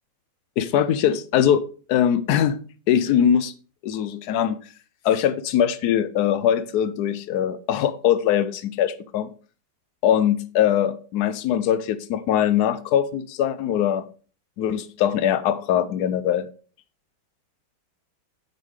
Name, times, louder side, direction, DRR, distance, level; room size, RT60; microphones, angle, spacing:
voice 1, 0.6-1.6 1.9-2.6 2.9-3.5 3.8-4.6 5.0-9.3 10.0-14.0 14.6-16.5, left 9 dB, 75° left, 0.9 m, -21 dB
9.6 x 3.6 x 4.8 m
omnidirectional pair, 2.2 m